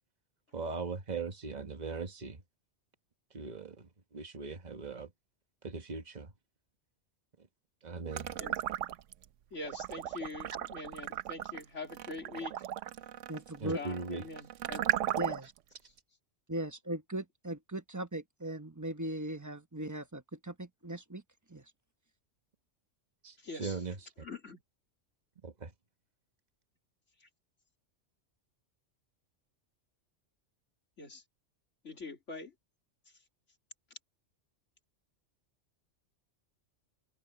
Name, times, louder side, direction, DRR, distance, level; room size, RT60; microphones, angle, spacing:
voice 1, 0.5-2.4 3.3-3.7 4.1-5.1 5.6-6.3 7.8-8.3 13.6-14.2 23.2-23.3 23.6-24.0 25.4-25.7, right 4 dB, 35° right, 1.5 m, -39 dB
sound 1, 8.1-9.2 9.6-15.6, right 11 dB, 85° right, 1.0 m, -36 dB
voice 2, 9.5-12.5 13.7-14.9 23.4-23.9 24.2-24.6 27.2-27.3 31.0-31.2 31.8-32.5, left 3 dB, 75° left, 3.3 m, -44 dB
voice 3, 13.3-13.8 15.2-15.5 16.5-21.2 21.5-21.6, right 1 dB, 15° right, 1.0 m, -38 dB
omnidirectional pair, 1.2 m